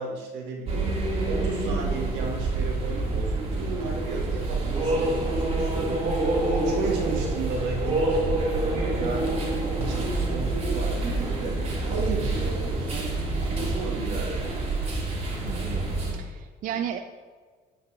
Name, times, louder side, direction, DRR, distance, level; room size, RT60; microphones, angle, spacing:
voice 1, 0.0-6.2 6.4-9.4 9.7-14.6, right 3 dB, 90° right, -1 dB, 1.5 m, -34 dB
sound 1, 0.6-16.1, right 2 dB, 35° right, 1.9 m, -27 dB
voice 2, 6.9-7.2 15.4-15.9 16.1-17.0, right 10 dB, 55° right, 7 dB, 0.4 m, -33 dB
9.8 x 4.4 x 3.1 m, 1.5 s
cardioid pair, 110°, 17 cm